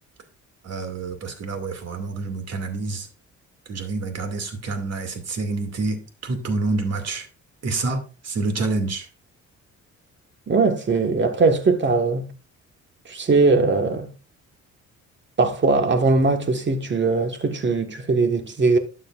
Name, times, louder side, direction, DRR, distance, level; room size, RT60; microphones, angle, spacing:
voice 1, 0.6-3.1 3.7-7.3 7.6-9.1, right 3 dB, 55° right, 2.5 m, -28 dB
voice 2, 10.5-12.3 13.1-14.1 15.4-18.8, right 3 dB, 40° right, 1.6 m, -20 dB
12.0 x 7.4 x 2.5 m
cardioid pair, 90°, 30 cm